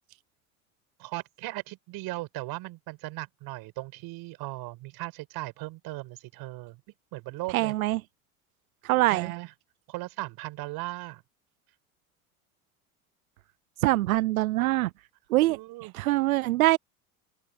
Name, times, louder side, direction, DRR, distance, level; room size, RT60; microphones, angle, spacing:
voice 1, 1.0-6.8 7.1-7.7 9.1-9.5 9.9-11.2 15.5-15.9, right 20 dB, 65° right, 6.4 m, -37 dB
voice 2, 7.5-8.0 8.8-9.3 13.8-14.9 15.3-15.6 15.9-16.8, right 18 dB, 90° right, 0.5 m, -23 dB
open air
hypercardioid pair, 75°, 41 cm